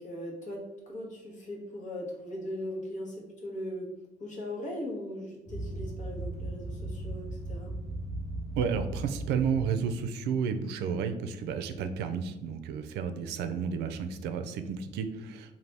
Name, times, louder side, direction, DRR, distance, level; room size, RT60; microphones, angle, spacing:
voice 1, 0.0-3.9 4.2-7.7, left 1 dB, 50° left, -1 dB, 1.3 m, -39 dB
sound 1, 5.5-10.1, right 1 dB, 85° left, 1.5 m, -37 dB
voice 2, 8.6-15.6, right 6 dB, 80° right, 9 dB, 0.4 m, -32 dB
4.0 x 2.7 x 3.3 m, 0.99 s
cardioid pair, 110°, 17 cm